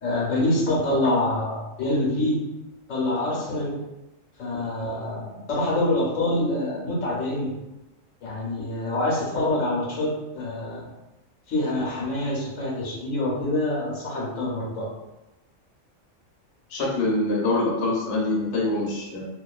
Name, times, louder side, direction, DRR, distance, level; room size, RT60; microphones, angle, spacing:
voice 1, 0.0-2.4 2.9-3.8 4.4-7.5 8.2-10.8 11.5-14.9, left 1 dB, 80° left, -4 dB, 1.1 m, -26 dB
voice 2, 16.7-19.2, left 2 dB, 60° left, -5 dB, 0.9 m, -24 dB
2.5 x 2.3 x 2.3 m, 0.96 s
omnidirectional pair, 1.3 m